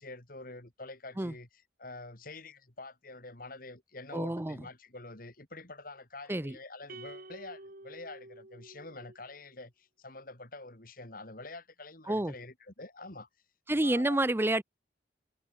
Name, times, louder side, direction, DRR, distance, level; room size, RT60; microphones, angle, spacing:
voice 1, 0.0-1.5 1.8-13.3 13.8-14.2, left 2 dB, 50° left, 3.3 m, -47 dB
voice 2, 4.1-4.6 6.3-6.6 12.1-12.3 13.7-14.6, right 1 dB, 10° right, 0.6 m, -29 dB
sound 1, 6.9-9.4, right 2 dB, 50° right, 2.6 m, -49 dB
head